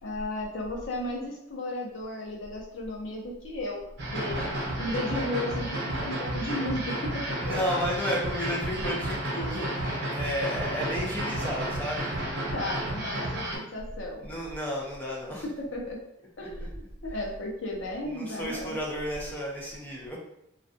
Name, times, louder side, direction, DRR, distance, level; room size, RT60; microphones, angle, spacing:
voice 1, 0.0-3.8 4.1-4.4 4.8-7.6 12.5-14.3 15.4-16.0 16.4-18.8, left 1 dB, 60° left, -1 dB, 0.6 m, -34 dB
sound 1, 4.0-13.6, right 1 dB, 55° right, 0.7 m, -32 dB
voice 2, 7.4-12.1 14.2-15.4 16.4-16.7 18.1-20.2, equal, 10° left, -4 dB, 0.5 m, -32 dB
2.3 x 2.2 x 2.5 m, 0.79 s
head